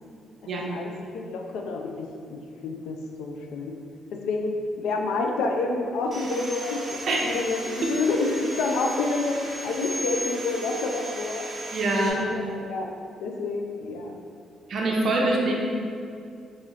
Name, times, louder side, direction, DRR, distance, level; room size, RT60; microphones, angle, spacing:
voice 1, 0.4-3.8 4.2-9.4 9.6-11.5 12.0-12.9 13.2-14.1, left 3 dB, 85° left, 2 dB, 0.3 m, -29 dB
Sawing, 6.1-12.1, right 1 dB, 30° right, 0.8 m, -36 dB
voice 2, 11.7-12.2 14.7-15.5, right 2 dB, 60° right, -2 dB, 0.5 m, -24 dB
3.0 x 2.8 x 3.8 m, 2.4 s
cardioid pair, 90°, 0 cm